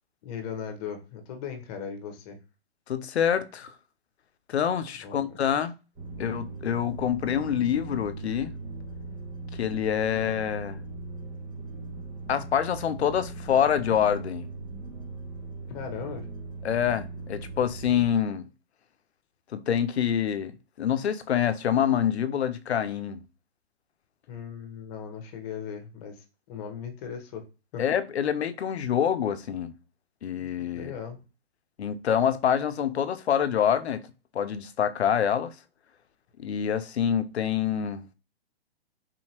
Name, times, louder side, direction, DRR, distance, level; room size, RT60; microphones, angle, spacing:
voice 1, 0.2-2.4 5.0-5.3 15.7-16.3 24.3-27.4 27.7-27.8 30.4-31.2, left 7 dB, 35° left, 1.0 m, -38 dB
voice 2, 2.9-3.7 4.5-5.7 6.2-8.5 9.5-10.8 12.3-14.5 16.6-18.5 19.5-23.2 27.8-29.7 30.2-30.9 31.8-34.1 34.3-35.5 36.4-38.1, left 9 dB, 85° left, 0.6 m, -26 dB
sound 1, 5.9-18.1, right 3 dB, 25° right, 1.8 m, -39 dB
4.0 x 2.8 x 2.9 m
hypercardioid pair, 130°, 32 cm